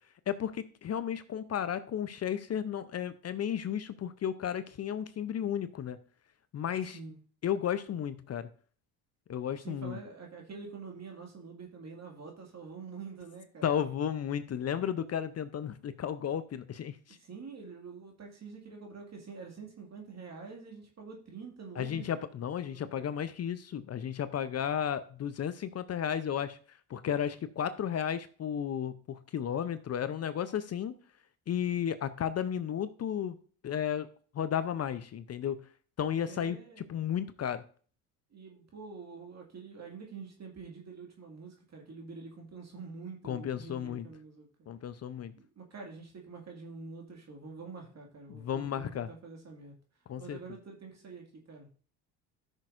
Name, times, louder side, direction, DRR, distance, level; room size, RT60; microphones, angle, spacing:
voice 1, 0.3-6.0 6.5-7.0 7.4-8.5 9.3-10.0 13.6-17.2 21.8-26.6 26.9-31.0 31.5-33.4 33.6-34.1 34.3-35.6 36.0-36.6 36.9-37.6 43.2-44.1 44.7-45.3 48.3-49.1 50.1-50.4, left 9 dB, 35° left, 13 dB, 0.6 m, -33 dB
voice 2, 6.8-7.2 9.6-13.7 17.1-22.3 22.7-23.3 36.3-37.0 38.3-44.5 45.4-49.7 50.2-51.7, right 4 dB, 35° right, 1 dB, 2.1 m, -46 dB
12.5 x 6.4 x 2.5 m, 0.43 s
supercardioid pair, 80°, 43 cm